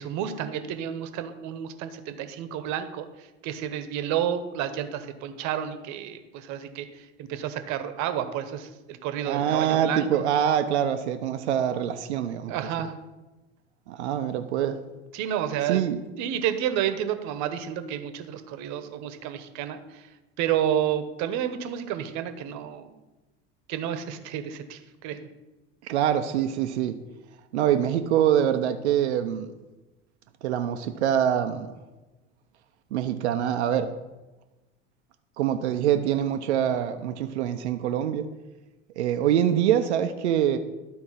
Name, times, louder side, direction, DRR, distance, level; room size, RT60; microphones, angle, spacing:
voice 1, 0.0-10.1 12.5-12.9 15.1-15.8 16.2-20.1 20.4-22.9 23.7-25.2, right 10 dB, 55° right, 10 dB, 1.1 m, -30 dB
voice 2, 9.2-12.5 13.9-14.8 15.7-16.0 25.8-27.0 27.5-29.5 30.4-31.7 32.9-33.9 35.4-38.2 39.0-40.6, right 10 dB, 80° right, 8 dB, 0.7 m, -24 dB
12.0 x 4.2 x 5.7 m, 1.1 s
hypercardioid pair, 80°, 33 cm